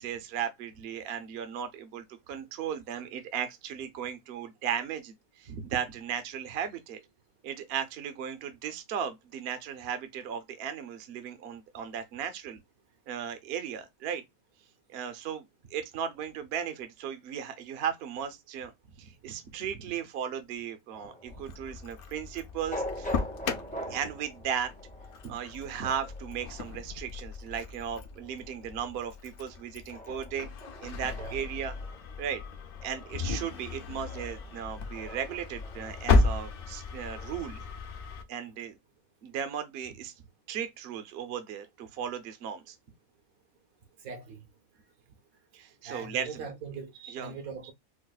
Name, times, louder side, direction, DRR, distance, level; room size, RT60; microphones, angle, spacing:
voice 1, 0.0-7.0 7.4-12.6 13.1-14.2 14.9-15.4 15.7-18.7 19.0-23.1 23.8-24.7 25.2-30.5 30.8-31.8 32.2-32.4 32.8-37.6 38.3-38.7 39.2-40.1 40.5-42.7 45.5-46.5 47.0-47.3, right 8 dB, 55° right, 0.7 m, -36 dB
sound 1, 20.9-37.4, equal, 10° left, 0.4 m, -44 dB
Engine starting, 21.3-38.2, left 3 dB, 60° left, 0.5 m, -34 dB
voice 2, 44.0-44.4 45.8-46.9 47.2-47.7, right 5 dB, 80° right, 1.4 m, -40 dB
4.7 x 2.1 x 2.3 m
omnidirectional pair, 1.5 m